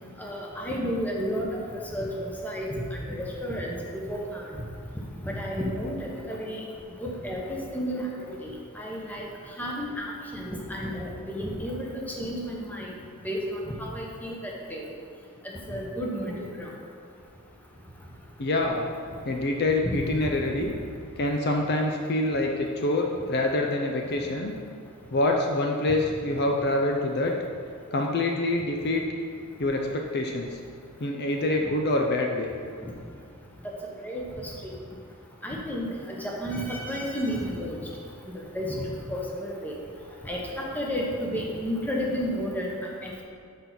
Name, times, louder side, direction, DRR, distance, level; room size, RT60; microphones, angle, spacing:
voice 1, 0.2-1.6 1.9-2.7 3.1-4.4 5.2-6.6 7.0-9.3 9.6-12.9 13.2-14.9 15.7-16.7 19.8-20.3 32.8-32.9 33.6-33.7 34.0-34.5 35.4-37.8 38.3-39.7 40.3-42.7 43.0-43.2, equal, 5° left, -2 dB, 1.0 m, -32 dB
voice 2, 18.4-18.9 19.3-20.7 21.2-24.5 25.1-27.3 27.9-29.1 29.6-30.6 31.0-32.5, left 2 dB, 45° left, 1 dB, 0.6 m, -26 dB
6.7 x 5.3 x 5.9 m, 2.3 s
head